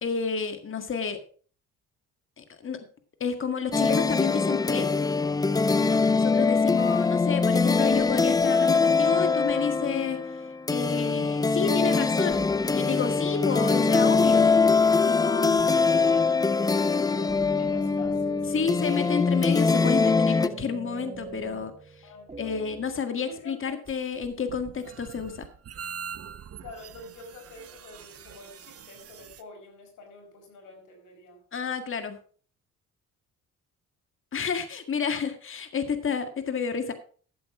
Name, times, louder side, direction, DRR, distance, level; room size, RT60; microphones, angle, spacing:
voice 1, 0.0-1.2 2.4-2.8 3.2-4.9 6.2-10.2 10.7-12.4 12.7-14.5 15.0-15.7 18.5-21.7 22.4-25.5 31.5-32.2 34.3-36.9, left 6 dB, 45° left, 8 dB, 1.8 m, -30 dB
sound 1, 3.7-20.5, left 4 dB, 15° left, 0.4 m, -23 dB
voice 2, 5.9-6.2 15.5-18.5 22.0-22.7 23.3-23.8 26.6-31.4, left 2 dB, 75° left, 3 dB, 4.9 m, -46 dB
sound 2, 7.9-8.7 9.5-10.6 12.3-12.9 14.1-15.3 15.6-23.0, right 4 dB, 20° right, 1.3 m, -43 dB
sound 3, 23.9-29.4, right 8 dB, 50° right, 1.1 m, -43 dB
12.5 x 7.7 x 4.9 m, 0.42 s
cardioid pair, 90°, 30 cm